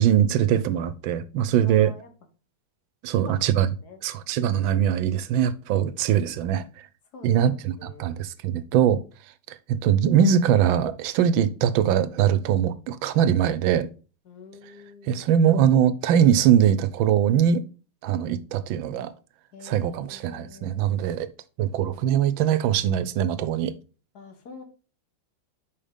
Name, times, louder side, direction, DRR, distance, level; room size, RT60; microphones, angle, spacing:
voice 1, 0.0-1.9 3.0-3.7 4.0-6.7 7.2-9.0 9.5-13.9 15.1-17.6 18.0-19.1 19.6-21.3 21.6-23.7, right 9 dB, 75° right, 1.4 m, -22 dB
voice 2, 1.6-2.1 3.1-3.4 3.8-4.0 7.1-7.4 7.8-8.2 14.2-15.2 19.5-20.7 24.1-24.6, left 3 dB, 55° left, 1.7 m, -45 dB
5.6 x 5.4 x 5.0 m
omnidirectional pair, 2.2 m